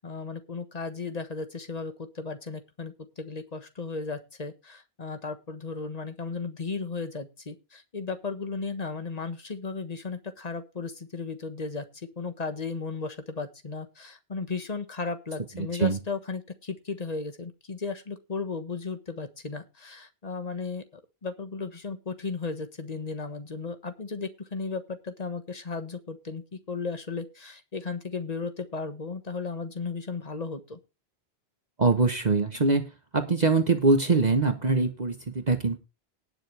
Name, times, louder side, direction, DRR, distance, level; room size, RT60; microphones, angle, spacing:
voice 1, 0.0-20.8 21.2-30.8, left 4 dB, 40° left, 9 dB, 1.5 m, -35 dB
voice 2, 31.8-32.8 33.1-35.8, right 3 dB, 45° right, 6 dB, 1.2 m, -23 dB
19.0 x 7.0 x 3.4 m, 0.28 s
omnidirectional pair, 1.0 m